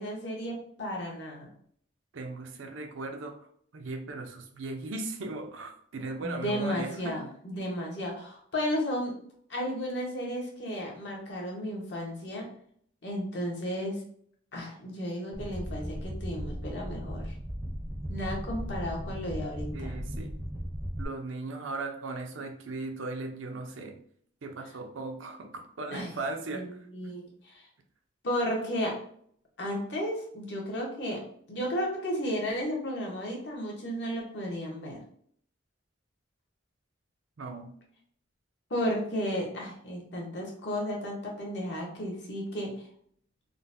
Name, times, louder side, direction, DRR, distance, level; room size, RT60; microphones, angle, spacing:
voice 1, 0.0-1.5 6.2-9.2 9.5-12.5 13.0-14.0 14.5-17.2 18.1-20.0 25.9-26.2 26.5-27.6 28.2-29.0 29.6-35.0 38.7-42.9, equal, 60° left, -1 dB, 0.9 m, -33 dB
voice 2, 2.1-3.4 3.7-7.2 19.7-20.3 21.0-24.0 24.4-26.7 37.4-37.7, right 3 dB, 85° right, 4 dB, 0.5 m, -37 dB
sound 1, 15.3-21.0, equal, 15° right, 0.5 m, -36 dB
3.7 x 2.1 x 2.6 m, 0.62 s
head